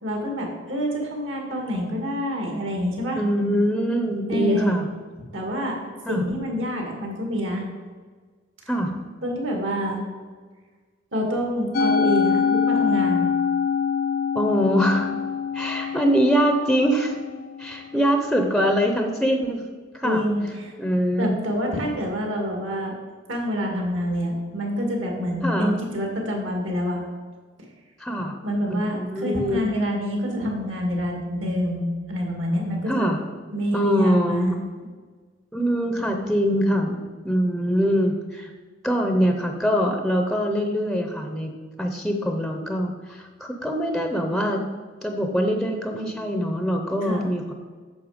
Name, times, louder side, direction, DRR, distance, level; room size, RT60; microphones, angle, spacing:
voice 1, 0.0-3.2 4.3-4.7 5.3-5.8 6.1-7.7 9.2-10.0 11.1-13.3 15.8-15.9 17.8-17.9 20.0-20.7 21.2-22.9 23.3-27.0 28.4-33.1 33.5-34.6 47.0-47.3, equal, 70° right, 1 dB, 2.3 m, -27 dB
voice 2, 3.2-4.9 6.1-6.2 8.7-9.0 14.3-15.1 15.5-17.2 17.6-19.6 19.9-20.2 20.8-21.4 25.4-25.8 28.0-28.4 28.7-29.7 32.9-33.2 33.7-34.6 35.5-38.5 38.8-41.5 41.8-44.6 45.0-47.5, equal, ahead, 4 dB, 0.7 m, -23 dB
Musical instrument, 11.7-18.1, left 6 dB, 50° left, 0.6 m, -24 dB
8.8 x 6.7 x 5.1 m, 1.5 s
head